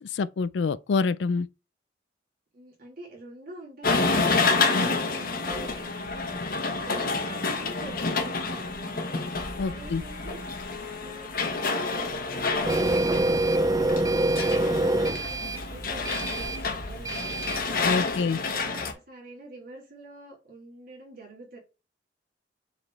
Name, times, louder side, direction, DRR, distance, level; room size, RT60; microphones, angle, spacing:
voice 1, 0.0-1.5 4.5-4.9 9.6-10.0 17.8-18.4, left 4 dB, 75° left, 0.4 m, -27 dB
voice 2, 2.5-6.4 6.7-9.2 9.6-10.5 11.0-17.3 18.1-21.6, right 2 dB, 50° right, 3.2 m, -46 dB
sound 1, 3.8-18.9, left 4 dB, 50° left, 1.3 m, -29 dB
Printer, 12.6-17.7, right 1 dB, 20° right, 0.4 m, -26 dB
7.0 x 4.1 x 3.3 m
head